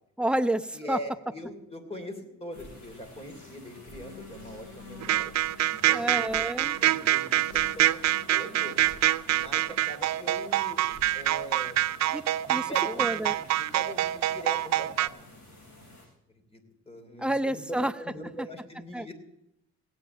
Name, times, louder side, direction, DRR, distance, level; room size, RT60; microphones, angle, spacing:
voice 1, 0.2-1.0 5.9-6.8 12.1-12.2 12.5-12.7 13.0-13.4 17.2-17.9 18.9-19.1, right 1 dB, 5° right, 10 dB, 0.6 m, -29 dB
voice 2, 0.7-5.3 5.7-6.2 6.8-8.0 8.3-8.9 9.3-10.8 11.1-11.8 12.5-15.4 16.3-16.6 16.9-17.6 18.0-19.1, equal, 20° left, 5 dB, 3.0 m, -42 dB
sound 1, 2.5-16.1, left 2 dB, 70° left, 7.5 m, -49 dB
sound 2, 5.0-15.1, right 14 dB, 60° right, 0.5 m, -25 dB
17.0 x 8.6 x 7.1 m, 0.85 s
cardioid pair, 90°, 30 cm